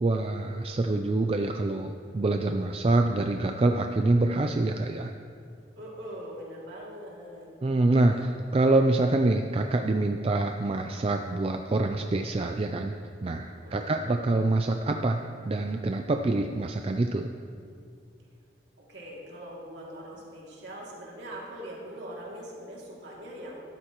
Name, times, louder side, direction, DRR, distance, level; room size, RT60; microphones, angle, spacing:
voice 1, 0.0-5.1 7.6-12.9 13.2-17.3, right 2 dB, 30° right, 4 dB, 0.3 m, -26 dB
voice 2, 5.8-7.5 8.1-8.2 13.6-13.9 18.8-23.6, equal, 65° right, -4 dB, 2.5 m, -42 dB
12.5 x 12.5 x 3.0 m, 2.4 s
head